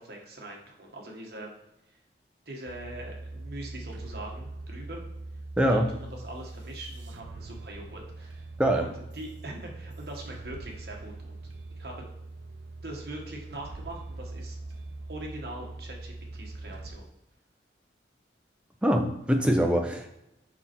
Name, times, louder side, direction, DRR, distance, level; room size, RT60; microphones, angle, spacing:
voice 1, 0.0-1.5 2.5-5.0 5.6-8.4 8.7-11.4 11.8-11.9 12.8-14.6 15.1-17.1, right 1 dB, 55° right, 0 dB, 1.4 m, -42 dB
sound 1, 2.7-17.0, right 2 dB, 75° right, 0.6 m, -42 dB
voice 2, 5.6-5.9 8.6-8.9 18.8-20.1, equal, 5° right, 3 dB, 0.6 m, -23 dB
6.0 x 5.5 x 4.4 m, 0.87 s
head